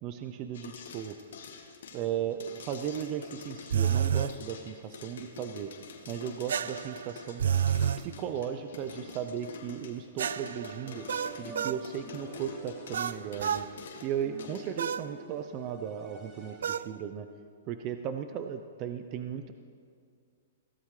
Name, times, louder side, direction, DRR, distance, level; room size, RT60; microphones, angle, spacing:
voice 1, 0.0-1.2 1.9-5.7 6.1-7.4 8.0-11.1 11.4-13.7 14.0-17.3 17.7-19.5, right 9 dB, 30° right, 8 dB, 0.6 m, -36 dB
sound 1, 0.5-14.7, left 5 dB, 75° left, 2.1 m, -47 dB
sound 2, 3.7-4.4 6.5-8.0 10.2-11.8 12.9-13.7 14.8-15.1 16.6-16.9, right 8 dB, 80° right, 0.4 m, -29 dB
sound 3, 10.9-16.9, right 2 dB, 15° right, 2.5 m, -48 dB
22.0 x 16.5 x 3.3 m, 2.1 s
hypercardioid pair, 155°, 0 cm